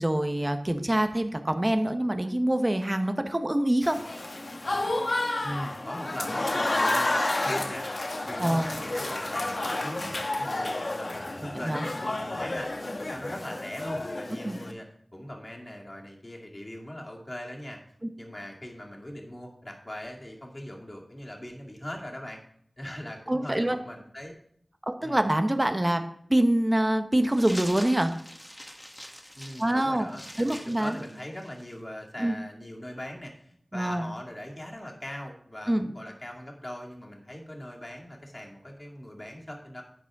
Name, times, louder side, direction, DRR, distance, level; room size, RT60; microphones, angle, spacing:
voice 1, 0.0-4.0 8.4-8.7 11.4-11.9 14.4-14.6 23.3-23.8 24.8-26.0 26.3-28.1 29.6-30.1 30.4-31.0 32.2-32.3 33.7-34.1 35.7-35.9, right 1 dB, 25° right, 7 dB, 1.1 m, -25 dB
Applause / Crowd, 3.8-14.7, left 2 dB, 60° left, 1.2 m, -30 dB
voice 2, 5.4-7.9 8.3-12.7 13.0-14.9 15.1-17.8 18.2-22.4 22.8-24.3 25.0-25.2 29.3-39.8, left 1 dB, 30° left, -1 dB, 2.3 m, -40 dB
sound 1, 27.3-31.7, equal, 10° left, 1.7 m, -43 dB
11.0 x 8.8 x 3.7 m, 0.67 s
wide cardioid pair, 50°, 0 cm